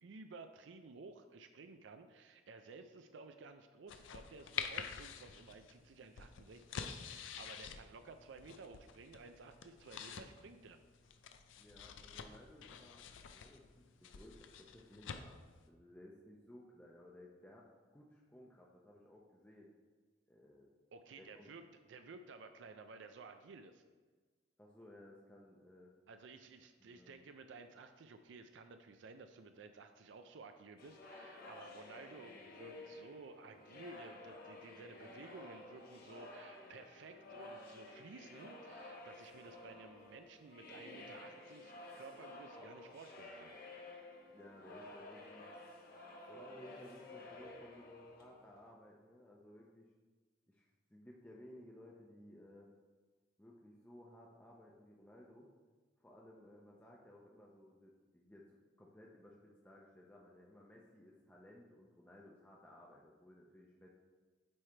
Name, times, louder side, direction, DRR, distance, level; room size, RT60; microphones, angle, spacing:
voice 1, 0.0-10.8 20.9-21.6 21.9-23.8 26.1-43.6, right 4 dB, 70° right, 8 dB, 0.4 m, -55 dB
sound 1, 3.9-15.7, left 7 dB, 80° left, 0.4 m, -48 dB
voice 2, 11.6-13.0 13.3-15.4 15.7-19.7 20.3-20.7 21.2-21.5 24.6-25.9 26.8-27.2 44.3-45.6 46.3-49.9 50.5-52.7 53.4-55.5 56.0-63.9, left 1 dB, 10° left, -3 dB, 0.5 m, -58 dB
sound 2, 30.8-48.6, left 2 dB, 50° left, 0.9 m, -53 dB
8.6 x 3.2 x 4.4 m, 1.4 s
head